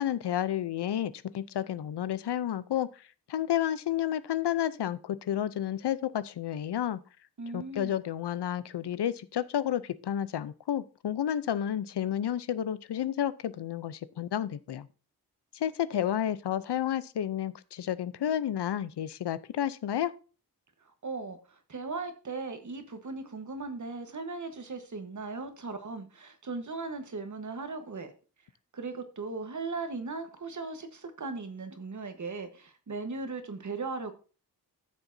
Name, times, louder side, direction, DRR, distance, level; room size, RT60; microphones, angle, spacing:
voice 1, 0.0-2.9 3.3-7.0 7.5-14.9 15.5-20.1, left 10 dB, 85° left, 0.6 m, -31 dB
voice 2, 7.4-8.0 21.0-28.1 28.7-34.1, right 3 dB, 45° right, 1.3 m, -38 dB
13.0 x 7.2 x 2.7 m
wide cardioid pair, 135°, 39 cm